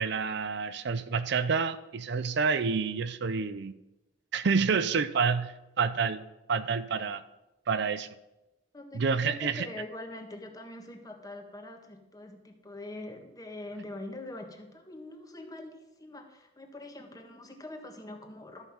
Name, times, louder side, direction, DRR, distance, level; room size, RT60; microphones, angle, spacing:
voice 1, 0.0-3.7 4.3-6.2 6.5-7.2 7.7-8.1 8.9-9.7, right 5 dB, 60° right, 13 dB, 0.5 m, -28 dB
voice 2, 8.7-18.6, left 2 dB, 20° left, 4 dB, 1.4 m, -43 dB
12.5 x 5.7 x 7.2 m, 0.98 s
head